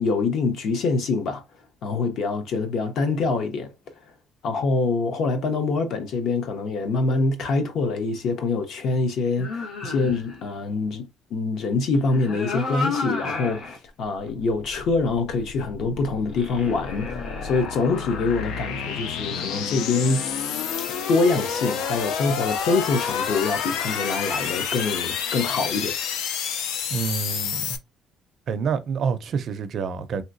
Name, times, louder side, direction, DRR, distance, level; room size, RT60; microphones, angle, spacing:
voice 1, 0.0-1.4 1.8-3.7 4.4-20.2 21.1-26.0, left 3 dB, 55° left, 0.7 m, -25 dB
sound 1, 9.4-10.5 11.9-13.8 14.3-14.4 16.3-18.8, left 4 dB, 70° left, 1.4 m, -32 dB
sound 2, 14.1-27.8, left 7 dB, 85° left, 0.5 m, -29 dB
voice 2, 26.9-27.8 28.5-30.2, right 6 dB, 45° right, 0.4 m, -27 dB
3.3 x 2.8 x 2.6 m
cardioid pair, 170°, 0 cm